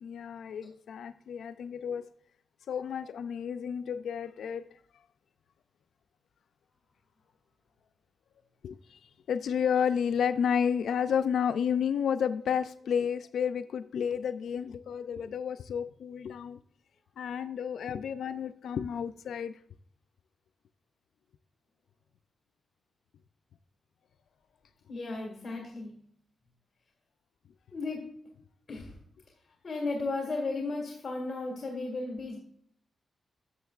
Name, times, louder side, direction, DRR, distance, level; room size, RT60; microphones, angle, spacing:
voice 1, 0.0-2.0 2.7-4.7 8.6-9.0 9.3-16.6 17.2-19.5, left 7 dB, 85° left, 9 dB, 0.3 m, -31 dB
voice 2, 24.9-26.0 27.7-28.2 28.7-29.0 29.6-32.4, left 3 dB, 25° left, -1 dB, 1.9 m, -35 dB
12.5 x 7.1 x 2.4 m, 0.64 s
wide cardioid pair, 140°, 0 cm